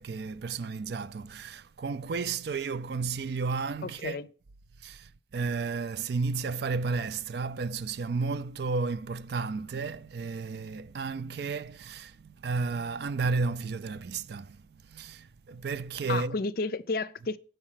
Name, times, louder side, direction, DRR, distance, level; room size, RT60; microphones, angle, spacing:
voice 1, 0.0-4.2 4.8-14.6 14.9-16.4, right 4 dB, 60° right, 0.4 m, -32 dB
voice 2, 3.8-4.3 16.1-17.4, left 3 dB, 55° left, 0.5 m, -32 dB
7.4 x 5.3 x 5.7 m
head